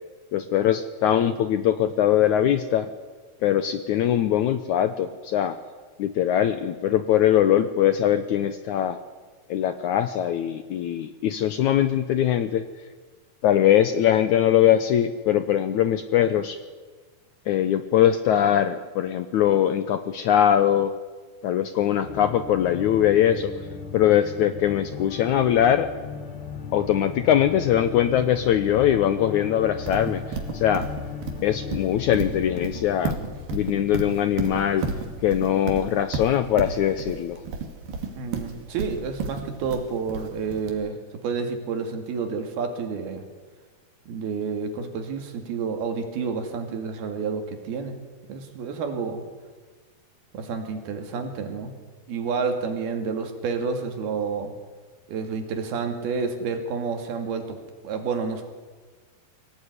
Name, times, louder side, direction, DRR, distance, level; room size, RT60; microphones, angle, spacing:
voice 1, 0.3-2.9 3.4-5.6 6.0-9.0 9.5-12.7 13.4-16.6 17.5-20.9 21.4-23.5 23.9-25.9 26.7-30.9 31.4-33.2 33.5-34.9 35.2-37.4, left 10 dB, 75° left, 11 dB, 1.8 m, -21 dB
sound 1, 22.0-33.5, left 6 dB, 55° left, 1.5 m, -36 dB
Livestock farm animals working animals, 29.9-40.7, right 4 dB, 65° right, 4.0 m, -32 dB
voice 2, 38.2-41.0 41.2-43.2 44.1-48.0 48.3-49.2 50.3-51.7 52.1-54.5 55.1-57.6 57.8-58.5, right 5 dB, 85° right, 6 dB, 4.3 m, -29 dB
23.5 x 17.5 x 9.7 m, 1.4 s
omnidirectional pair, 4.4 m